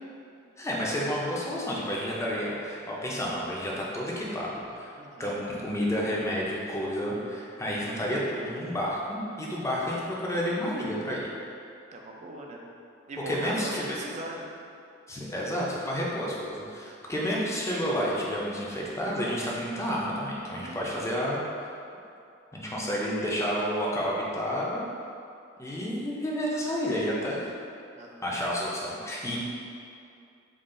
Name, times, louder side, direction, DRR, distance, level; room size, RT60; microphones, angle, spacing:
voice 1, 0.6-4.9 5.2-11.3 13.3-14.0 15.1-21.7 22.5-24.8 25.6-27.5 28.2-29.4, equal, 15° left, -4 dB, 0.5 m, -30 dB
voice 2, 5.0-5.4 11.9-12.6 13.1-14.5 20.6-21.0 27.9-28.2, right 1 dB, 35° right, -1 dB, 0.4 m, -39 dB
3.8 x 2.4 x 3.7 m, 2.5 s
head